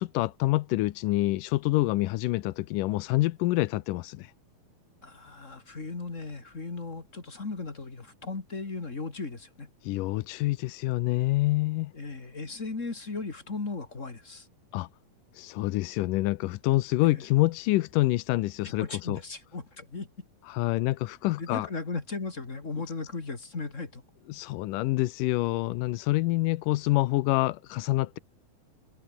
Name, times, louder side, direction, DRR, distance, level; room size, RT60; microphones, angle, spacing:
voice 1, 0.0-4.3 9.8-11.9 14.7-14.9 15.4-19.2 20.5-21.7 24.3-28.2, left 18 dB, 75° left, 2.1 m, -27 dB
voice 2, 5.0-9.7 11.9-14.5 17.0-17.2 18.6-20.1 21.4-24.0, left 3 dB, 25° left, 2.2 m, -37 dB
omnidirectional pair, 4.2 m